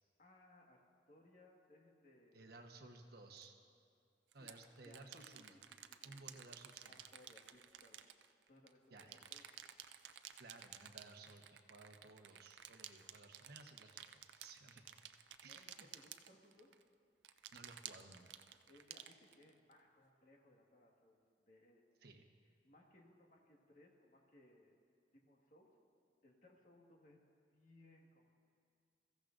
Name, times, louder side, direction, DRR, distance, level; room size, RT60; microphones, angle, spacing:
voice 1, 0.2-0.8 1.1-2.6 4.4-4.6 4.8-6.5 6.9-8.1 8.5-9.4 15.4-16.7 18.7-21.8 22.6-24.8 25.1-25.8 26.2-27.2 27.5-28.3, left 1 dB, 50° left, -1 dB, 1.7 m, -66 dB
voice 2, 2.3-3.6 4.3-5.6 6.0-7.0 8.9-9.2 10.4-14.8 15.1-15.9 17.5-18.4 22.0-22.3, right 3 dB, 60° right, 3 dB, 1.1 m, -58 dB
sound 1, 3.4-3.5 4.3-8.7 9.0-16.8 17.2-19.7, right 10 dB, 80° right, 0.5 m, -54 dB
22.5 x 14.5 x 2.6 m, 2.3 s
head